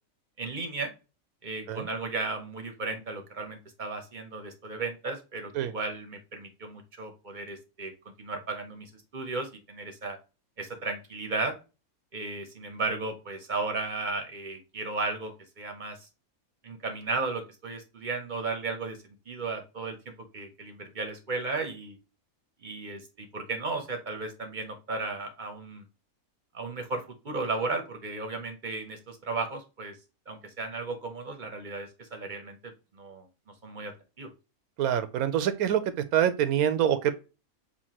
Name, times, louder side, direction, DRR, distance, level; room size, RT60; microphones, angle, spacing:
voice 1, 0.4-0.9 1.4-7.9 8.2-10.2 10.6-11.6 12.1-16.1 16.6-19.0 19.3-22.0 22.6-25.8 26.5-29.9 30.3-33.3 33.6-33.9 34.2-34.3, right 3 dB, 45° right, 0.7 m, -35 dB
voice 2, 34.8-35.8 36.1-37.1, right 10 dB, 85° right, 1.1 m, -25 dB
7.0 x 2.5 x 2.9 m
omnidirectional pair, 1.5 m